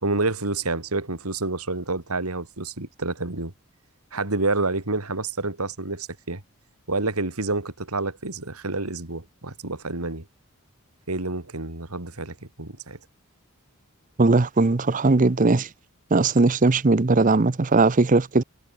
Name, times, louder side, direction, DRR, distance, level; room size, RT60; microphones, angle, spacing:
voice 1, 0.0-3.5 4.1-6.4 6.9-10.2 11.1-13.0, right 3 dB, 90° right, 2.9 m, -28 dB
voice 2, 14.2-15.7 16.1-18.4, right 3 dB, 35° right, 0.6 m, -19 dB
head